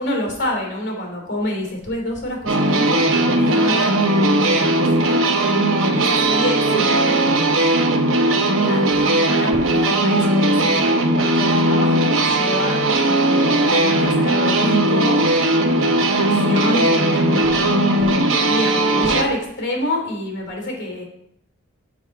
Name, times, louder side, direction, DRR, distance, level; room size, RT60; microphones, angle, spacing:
voice 1, 0.0-5.2 5.9-7.6 8.6-12.8 13.3-15.2 15.6-21.0, left 1 dB, 55° left, 0 dB, 2.9 m, -27 dB
sound 1, 2.5-19.2, right 1 dB, 65° right, 0.8 m, -18 dB
6.2 x 6.0 x 4.6 m, 0.77 s
head